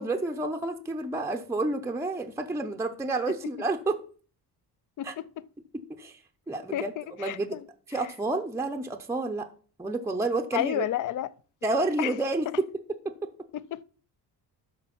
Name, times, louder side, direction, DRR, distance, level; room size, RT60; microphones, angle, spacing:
voice 1, 0.0-4.0 5.0-5.1 6.0-6.2 6.5-6.9 7.2-7.6 7.9-9.5 9.8-10.8 11.6-12.7 13.0-13.1, right 2 dB, 5° right, 0.6 m, -29 dB
voice 2, 5.0-5.3 6.7-7.6 10.5-11.3 11.7-12.1 13.5-13.8, left 12 dB, 50° left, 0.5 m, -31 dB
12.5 x 4.6 x 5.8 m
cardioid pair, 165°, 41 cm